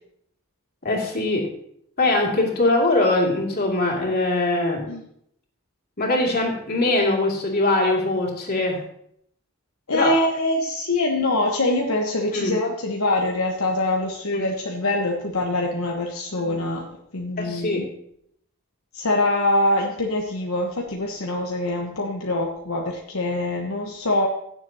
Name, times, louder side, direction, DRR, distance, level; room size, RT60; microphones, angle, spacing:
voice 1, 0.8-1.5 2.0-4.8 6.0-8.8 9.9-10.1 12.3-12.5 14.3-14.4 16.3-16.6 17.4-17.8, left 2 dB, 45° left, -1 dB, 2.7 m, -22 dB
voice 2, 9.9-17.9 18.9-24.3, left 2 dB, 75° left, 0 dB, 1.1 m, -24 dB
16.5 x 7.3 x 2.8 m, 0.71 s
head